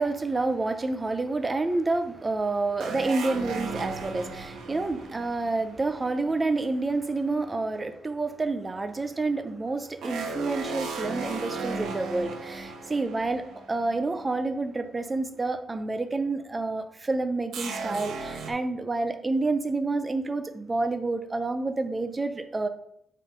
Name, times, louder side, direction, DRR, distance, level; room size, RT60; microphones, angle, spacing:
voice 1, 0.0-22.7, right 3 dB, 15° right, 9 dB, 0.5 m, -29 dB
sound 1, 2.8-6.3 10.0-14.1 14.4-14.5 17.5-18.5, right 4 dB, 70° right, 1.1 m, -36 dB
7.7 x 3.7 x 5.1 m, 0.76 s
cardioid pair, 180°, 0 cm